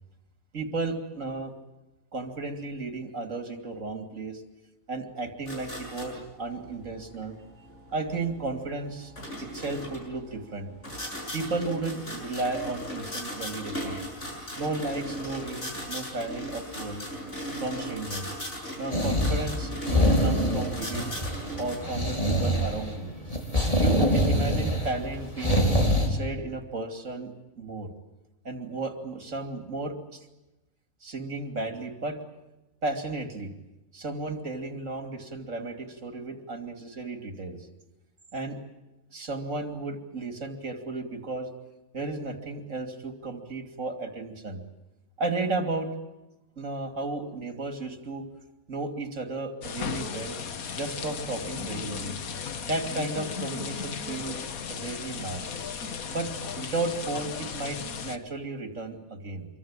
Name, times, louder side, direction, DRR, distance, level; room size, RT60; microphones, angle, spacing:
voice 1, 0.5-1.5 2.1-4.4 4.9-7.3 7.9-9.1 9.5-10.7 11.3-14.0 14.6-17.0 17.6-18.3 18.8-21.1 21.6-23.1 23.8-25.6 26.1-27.9 28.4-30.3 31.0-32.2 32.8-33.5 33.9-37.6 38.3-38.6 39.1-41.5 41.9-44.6 45.2-45.9 46.6-48.2 48.7-50.4 50.7-52.1 52.6-54.4 54.7-55.4 56.1-56.3 56.6-59.5, right 3 dB, 60° right, 6 dB, 3.2 m, -34 dB
sound 1, 5.5-21.8, equal, 55° left, 7.7 m, -38 dB
sound 2, 18.9-26.1, equal, 25° left, 4.6 m, -25 dB
sound 3, 49.6-58.2, left 6 dB, 80° left, 1.7 m, -35 dB
26.5 x 24.0 x 9.0 m, 1.0 s
omnidirectional pair, 1.5 m